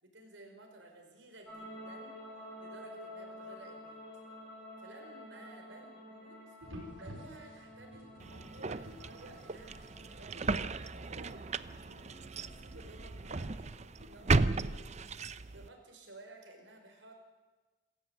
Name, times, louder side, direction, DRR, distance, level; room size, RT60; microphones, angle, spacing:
voice 1, 0.0-2.2 2.6-4.0 4.8-6.6 7.0-17.1, right 2 dB, 70° right, 3 dB, 5.3 m, -55 dB
sound 1, 1.5-14.7, left 1 dB, 5° left, 7.1 m, -51 dB
sound 2, 6.6-14.1, equal, 85° right, 4.8 m, -54 dB
sound 3, 8.2-15.7, right 3 dB, 35° right, 0.6 m, -35 dB
26.5 x 14.0 x 8.3 m, 1.2 s
head